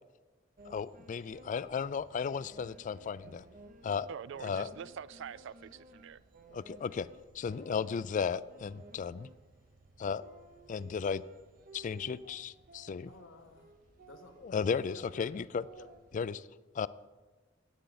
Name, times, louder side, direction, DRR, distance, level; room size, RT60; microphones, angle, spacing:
voice 1, 0.6-3.4 3.8-4.1 4.4-4.7 6.5-7.1 7.3-9.3 10.0-10.2 10.7-11.2 11.7-13.1 14.4-15.6 16.1-16.5 16.7-16.9, left 6 dB, 40° left, 0.3 m, -34 dB
sound 1, 0.6-16.2, right 2 dB, 45° right, 0.8 m, -57 dB
voice 2, 4.1-6.2, right 7 dB, 65° right, 0.4 m, -45 dB
voice 3, 13.1-13.7 14.0-15.5 15.7-15.9, left 2 dB, 75° left, 1.4 m, -54 dB
16.5 x 8.9 x 4.0 m
head